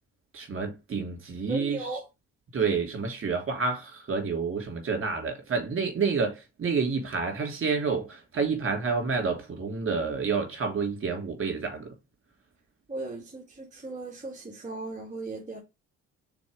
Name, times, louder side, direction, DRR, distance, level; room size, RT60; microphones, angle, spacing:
voice 1, 0.3-2.0 2.5-11.9, right 5 dB, 45° right, 3.1 m, -29 dB
voice 2, 1.5-2.0 12.9-15.6, right 2 dB, 25° right, 1.9 m, -37 dB
6.1 x 4.3 x 5.0 m
cardioid pair, 90°, 30 cm